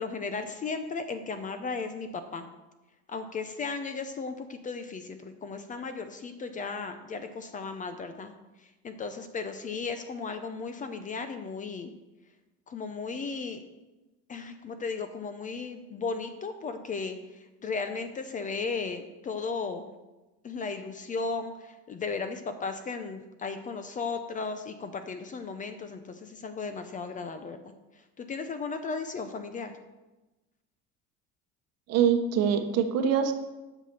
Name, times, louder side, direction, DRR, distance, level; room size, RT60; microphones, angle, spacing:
voice 1, 0.0-2.5 3.1-8.3 8.8-11.9 12.7-13.6 14.3-19.9 20.4-27.6 28.2-29.7, left 4 dB, 25° left, 8 dB, 0.6 m, -35 dB
voice 2, 31.9-33.3, right 7 dB, 50° right, 7 dB, 1.0 m, -24 dB
8.0 x 5.8 x 6.8 m, 1.1 s
cardioid pair, 145°, 33 cm